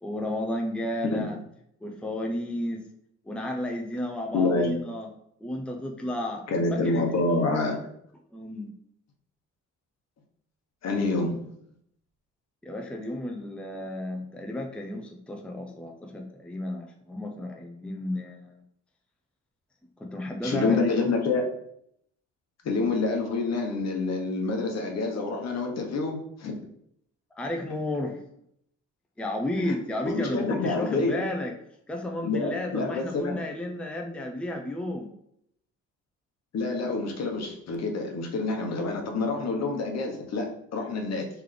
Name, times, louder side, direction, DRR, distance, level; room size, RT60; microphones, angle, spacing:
voice 1, 0.0-1.4 1.8-2.8 3.2-5.1 5.4-6.4 6.7-7.5 8.3-8.7 12.6-18.6 20.0-21.2 27.3-28.2 29.2-31.5 31.9-35.1, left 1 dB, 5° left, 2 dB, 0.5 m, -32 dB
voice 2, 4.3-4.7 6.5-7.8 10.8-11.4 20.4-21.4 22.6-26.5 29.7-29.8 30.1-31.2 32.2-33.4 36.5-41.3, left 3 dB, 60° left, 2 dB, 1.0 m, -27 dB
3.4 x 3.2 x 3.7 m, 0.72 s
cardioid pair, 90°, 30 cm